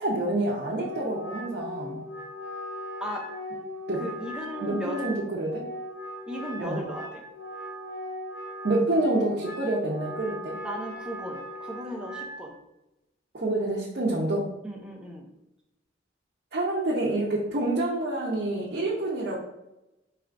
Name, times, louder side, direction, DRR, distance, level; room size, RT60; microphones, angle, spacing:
voice 1, 0.0-2.0 3.9-4.0 4.6-5.6 6.6-6.8 8.6-10.6 13.3-14.5 16.5-19.4, right 2 dB, 55° right, -6 dB, 0.7 m, -27 dB
Wind instrument woodwind instrument, 0.7-12.4, equal, 80° left, 0.7 m, -38 dB
voice 2, 4.0-5.1 6.3-7.2 10.6-12.6 14.6-15.3, equal, 5° right, 0 dB, 0.5 m, -36 dB
4.5 x 3.2 x 2.5 m, 0.93 s
head